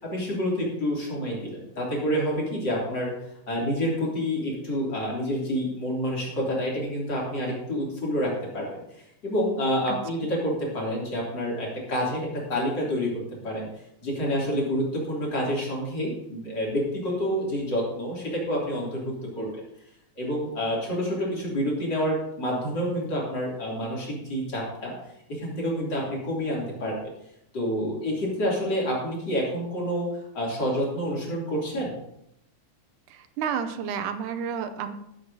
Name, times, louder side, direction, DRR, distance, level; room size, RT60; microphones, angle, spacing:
voice 1, 0.0-3.1 3.5-13.1 13.4-13.7 14.0-19.5 20.2-24.9 25.3-27.1 27.5-30.1 30.3-31.9, equal, 35° left, -5 dB, 3.5 m, -28 dB
voice 2, 33.1-34.9, right 7 dB, 80° right, 9 dB, 2.2 m, -31 dB
16.0 x 7.7 x 2.8 m, 0.81 s
omnidirectional pair, 3.7 m